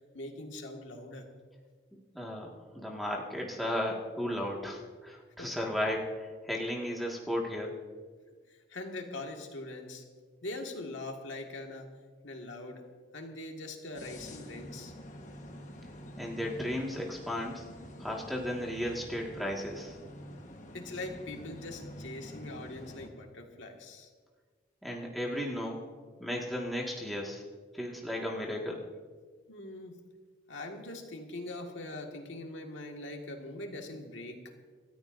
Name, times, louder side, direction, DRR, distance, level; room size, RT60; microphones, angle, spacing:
voice 1, 0.1-1.3 5.4-5.5 8.5-10.0 10.4-11.9 12.2-12.8 13.1-14.9 20.7-24.1 29.5-30.0 30.5-34.5, left 2 dB, 80° left, 2 dB, 1.8 m, -42 dB
voice 2, 2.1-7.7 16.2-17.6 18.0-20.0 24.8-25.8 26.2-27.4 27.7-28.8, left 1 dB, ahead, -3 dB, 1.8 m, -35 dB
sound 1, 13.9-23.1, equal, 40° left, 1.3 m, -47 dB
27.5 x 13.5 x 2.6 m, 1.5 s
head